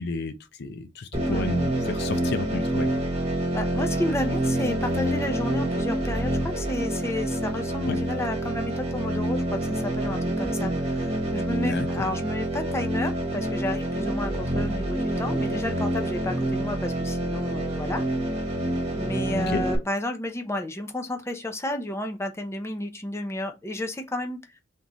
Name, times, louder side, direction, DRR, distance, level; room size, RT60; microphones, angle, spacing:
voice 1, 0.0-3.0 7.9-8.0 11.6-11.9 19.5-19.6, left 3 dB, 60° left, 0.5 m, -32 dB
sound 1, 1.1-19.8, right 1 dB, 35° right, 1.4 m, -27 dB
voice 2, 3.5-18.0 18.9-24.4, left 1 dB, 15° left, 0.6 m, -32 dB
3.6 x 3.0 x 3.8 m
head